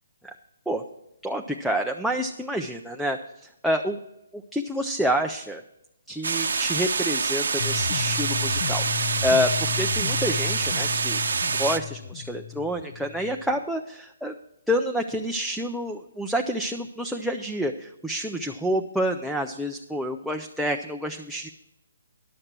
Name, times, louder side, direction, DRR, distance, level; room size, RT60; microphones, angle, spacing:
voice 1, 1.2-4.0 4.3-5.6 6.1-11.2 11.6-14.3 14.7-21.5, equal, ahead, 1 dB, 0.4 m, -28 dB
sound 1, 6.2-11.8, right 5 dB, 75° right, 0.7 m, -26 dB
sound 2, 7.6-13.6, left 10 dB, 50° left, 0.5 m, -33 dB
11.0 x 6.5 x 5.9 m, 0.83 s
hypercardioid pair, 155°, 0 cm